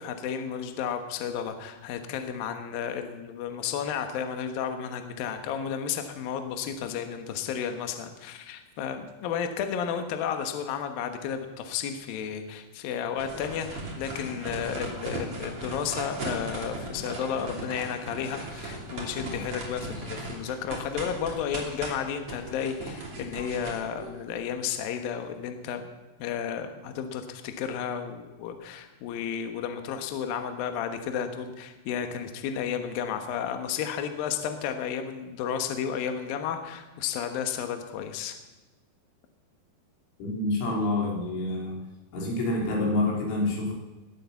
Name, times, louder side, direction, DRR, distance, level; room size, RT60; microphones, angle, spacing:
voice 1, 0.0-25.8 26.2-38.4, left 8 dB, 65° left, 6 dB, 2.5 m, -32 dB
sound 1, 13.2-24.8, right 2 dB, 35° right, 3.4 m, -38 dB
voice 2, 40.2-41.8 42.1-43.7, left 2 dB, 85° left, -1 dB, 6.0 m, -27 dB
20.5 x 8.3 x 7.1 m, 1.1 s
omnidirectional pair, 5.4 m